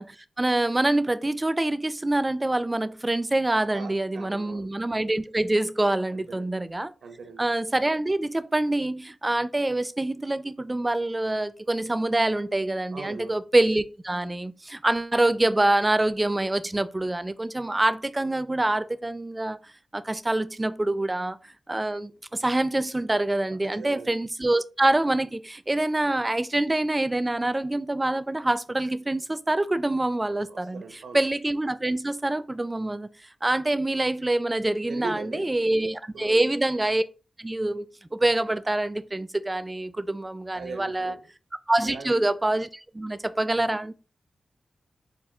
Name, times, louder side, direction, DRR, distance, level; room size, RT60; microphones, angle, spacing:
voice 1, 0.0-6.9 7.4-19.6 19.9-21.4 21.7-30.8 31.1-33.1 33.4-37.0 37.4-37.9 38.1-41.1 41.7-42.7 42.9-43.9, right 2 dB, 25° right, 0.4 m, -25 dB
voice 2, 3.7-4.7 6.1-6.5 7.0-7.4 12.9-13.4 23.5-24.1 30.5-31.2 34.8-35.5 36.1-36.5 40.5-41.2 41.8-42.1, right 4 dB, 85° right, 0.7 m, -39 dB
5.8 x 2.3 x 2.3 m
cardioid pair, 40°, 0 cm